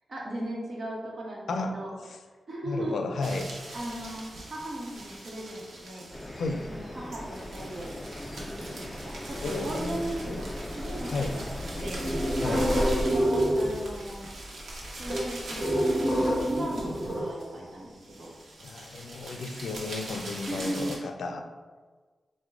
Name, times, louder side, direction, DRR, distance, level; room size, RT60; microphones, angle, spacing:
voice 1, 0.1-1.9 2.5-3.0 3.7-6.1 6.7-7.9 8.4-13.1 13.5-14.3 15.0-16.1 16.4-18.3 20.5-21.0, right 1 dB, 55° right, -3 dB, 0.9 m, -37 dB
voice 2, 2.6-3.5 6.4-6.7 9.4-10.4 11.1-11.4 12.4-12.7 18.6-21.5, left 3 dB, 85° left, 5 dB, 0.3 m, -33 dB
sound 1, 3.2-21.0, right 1 dB, 90° right, 0.9 m, -43 dB
sound 2, 6.1-13.0, equal, 15° left, 0.4 m, -37 dB
sound 3, 10.1-11.2 11.5-14.1 14.4-14.5 14.7-17.2, equal, 20° right, 1.1 m, -27 dB
4.5 x 2.1 x 3.6 m, 1.4 s
wide cardioid pair, 115°, 0 cm